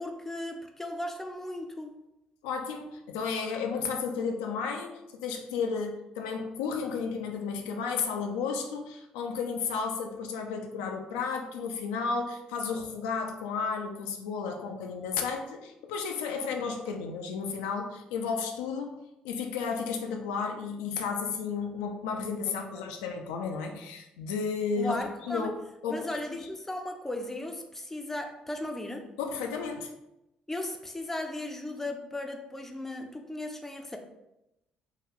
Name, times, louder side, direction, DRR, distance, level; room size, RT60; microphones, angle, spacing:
voice 1, 0.0-2.0 22.7-22.8 24.8-25.5 25.9-29.1 30.5-34.0, left 1 dB, 10° left, 4 dB, 0.5 m, -36 dB
voice 2, 2.4-19.0 19.2-25.5 25.8-26.5 29.2-29.9, left 5 dB, 65° left, 3 dB, 0.3 m, -33 dB
3.7 x 2.3 x 3.0 m, 0.90 s
figure-of-eight pair, 50°, 3 cm